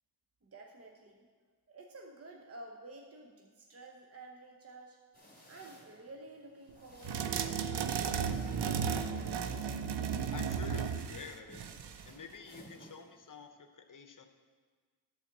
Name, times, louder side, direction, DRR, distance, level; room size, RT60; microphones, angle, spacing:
voice 1, 0.4-1.3 1.7-5.0 5.5-9.2, right 2 dB, 35° right, 1 dB, 0.9 m, -52 dB
sound 1, 5.1-13.5, right 1 dB, 20° left, 2.3 m, -58 dB
sound 2, 7.0-12.1, right 7 dB, 75° right, 0.6 m, -34 dB
voice 2, 10.3-11.6 12.0-14.3, left 5 dB, 50° left, 6 dB, 0.9 m, -49 dB
11.0 x 4.2 x 7.3 m, 1.5 s
wide cardioid pair, 85°, 41 cm